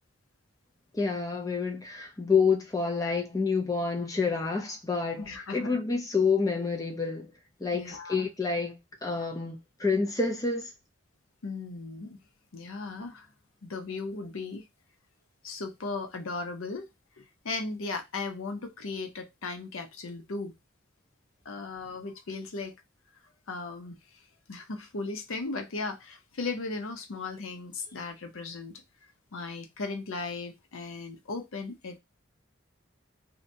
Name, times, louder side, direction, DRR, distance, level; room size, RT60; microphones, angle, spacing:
voice 1, 0.9-7.3 7.6-10.7, left 4 dB, 15° left, 0.5 m, -28 dB
voice 2, 5.2-5.7 7.7-8.3 11.4-12.2 12.5-13.3 13.6-14.6 15.4-16.9 17.2-20.5 21.5-22.8 23.5-24.0 24.5-28.8 29.3-32.0, left 3 dB, 90° left, 0.6 m, -37 dB
2.8 x 2.2 x 2.6 m
head